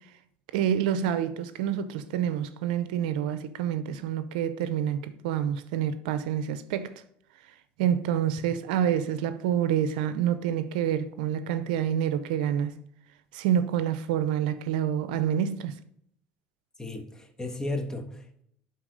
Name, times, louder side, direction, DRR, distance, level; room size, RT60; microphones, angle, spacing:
voice 1, 0.5-6.9 7.8-12.8 13.3-15.7, right 9 dB, 85° right, 0.6 m, -27 dB
voice 2, 16.8-18.4, left 2 dB, 15° left, 1.5 m, -35 dB
11.5 x 3.9 x 3.9 m
supercardioid pair, 90°, 4 cm